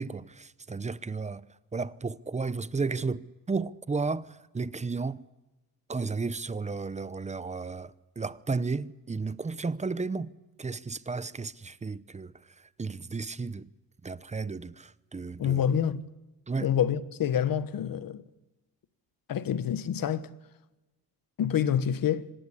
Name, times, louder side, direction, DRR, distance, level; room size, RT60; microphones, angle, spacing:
voice 1, 0.0-1.4 1.7-5.2 5.9-10.3 10.6-12.3 12.8-13.6 14.0-15.6 16.5-16.7, right 4 dB, 20° right, 0.8 m, -33 dB
voice 2, 15.4-16.1 16.6-18.2 19.3-20.3 21.4-22.3, left 9 dB, 60° left, 1.3 m, -27 dB
25.5 x 19.5 x 8.4 m
cardioid pair, 130°, 39 cm